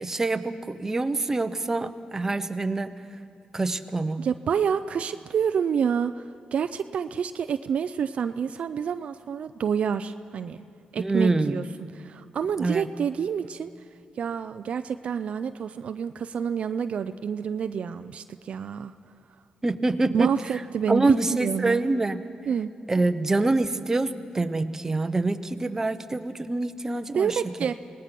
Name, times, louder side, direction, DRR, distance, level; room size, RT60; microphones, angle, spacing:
voice 1, 0.0-2.9 3.5-4.3 11.0-11.6 12.6-12.8 19.6-20.3 20.9-22.2 22.9-27.4, right 2 dB, 20° right, 9 dB, 0.9 m, -25 dB
voice 2, 4.2-10.6 10.9-11.6 11.9-13.7 14.2-18.9 20.1-21.8 22.5-22.7 27.1-27.7, right 7 dB, 60° right, 10 dB, 0.5 m, -28 dB
25.5 x 19.0 x 6.1 m, 2.5 s
cardioid pair, 100°, 2 cm